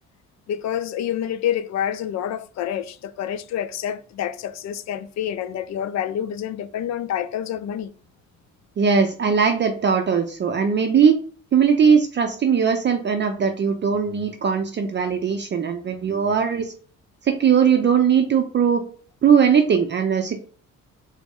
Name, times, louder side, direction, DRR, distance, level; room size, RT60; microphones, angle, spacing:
voice 1, 0.5-7.9, left 10 dB, 65° left, 0.4 m, -28 dB
voice 2, 8.8-11.1 11.5-16.7 17.2-18.8 19.2-20.4, right 7 dB, 35° right, 0.5 m, -19 dB
3.9 x 2.1 x 3.5 m
cardioid pair, 90°, 30 cm